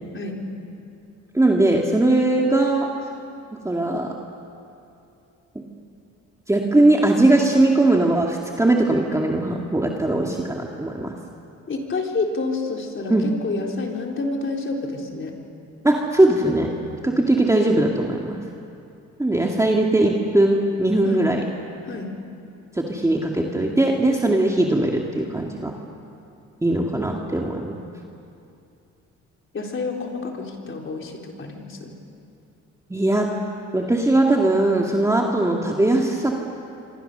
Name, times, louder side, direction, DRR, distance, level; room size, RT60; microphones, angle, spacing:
voice 1, 1.3-2.9 3.6-4.1 6.5-11.1 13.1-13.3 15.8-16.7 17.0-18.4 19.2-21.4 22.8-25.7 26.6-27.8 32.9-33.3 33.7-36.4, right 2 dB, 10° right, 0 dB, 2.1 m, -20 dB
voice 2, 11.7-15.3 21.0-21.2 21.8-22.1 23.6-23.8 29.5-31.9, left 3 dB, 40° left, 1 dB, 4.0 m, -29 dB
25.5 x 25.5 x 6.8 m, 2.6 s
cardioid pair, 90°, 30 cm